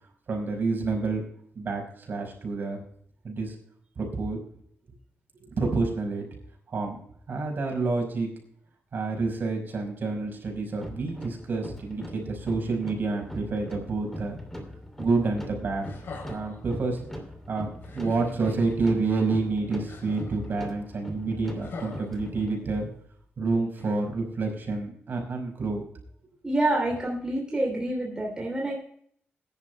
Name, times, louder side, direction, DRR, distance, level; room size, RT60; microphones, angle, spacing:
voice 1, 0.3-1.2 1.6-2.8 3.2-3.6 4.0-4.4 5.4-6.3 6.7-7.0 7.3-8.3 8.9-14.4 15.0-15.9 16.3-17.0 17.5-22.9 23.4-25.8, right 3 dB, 50° right, 1 dB, 5.2 m, -28 dB
sound 1, 10.8-22.6, equal, 5° left, 2.7 m, -41 dB
sound 2, 15.8-16.6 17.8-18.8 19.9-20.5 21.6-22.8 23.8-23.9, left 3 dB, 65° left, 3.9 m, -43 dB
voice 2, 26.4-28.8, right 1 dB, 20° right, -2 dB, 2.8 m, -27 dB
21.5 x 11.0 x 2.2 m, 0.62 s
wide cardioid pair, 135°, 4 cm